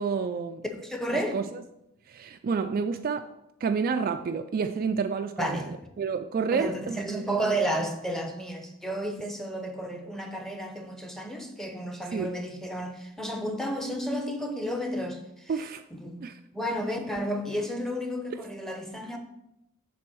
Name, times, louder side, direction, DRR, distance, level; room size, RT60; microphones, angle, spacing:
voice 1, 0.0-0.6 1.3-1.6 2.1-3.3 3.6-7.0 12.1-12.3 15.5-15.8 16.2-16.4, right 5 dB, 45° right, 8 dB, 0.3 m, -29 dB
voice 2, 0.8-1.4 5.4-5.7 6.5-15.2 15.9-16.2 16.5-19.2, right 1 dB, ahead, 4 dB, 0.7 m, -32 dB
7.5 x 3.5 x 6.1 m, 0.87 s
head